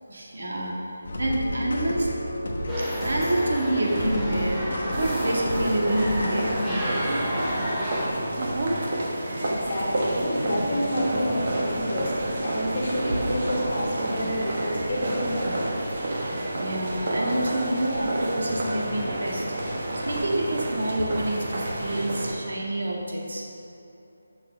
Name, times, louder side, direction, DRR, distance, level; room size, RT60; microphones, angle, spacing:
voice 1, 0.1-0.8 1.2-2.1 2.8-6.9 16.6-23.5, right 1 dB, 60° right, -2 dB, 1.8 m, -28 dB
sound 1, 1.0-6.9, left 1 dB, 50° left, 1.2 m, -31 dB
sound 2, 2.7-8.1, equal, 5° right, 0.8 m, -31 dB
sound 3, 4.9-22.3, right 1 dB, 35° right, 1.0 m, -29 dB
voice 2, 9.4-15.7, left 1 dB, 35° left, -4 dB, 1.7 m, -29 dB
6.6 x 6.5 x 5.8 m, 2.8 s
figure-of-eight pair, 180°, 0 cm